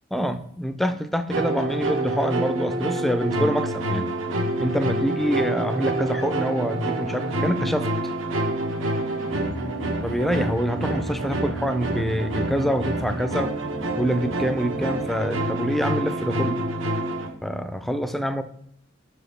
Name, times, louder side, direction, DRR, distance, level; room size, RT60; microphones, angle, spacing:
voice 1, 0.1-4.1 4.6-7.9 10.0-13.5 14.0-16.6 17.4-18.4, equal, ahead, 9 dB, 0.4 m, -26 dB
sound 1, 1.3-17.3, right 1 dB, 80° right, 1.1 m, -27 dB
sound 2, 5.6-7.9 8.5-10.7, left 1 dB, 70° left, 0.8 m, -41 dB
5.8 x 4.9 x 6.5 m, 0.75 s
head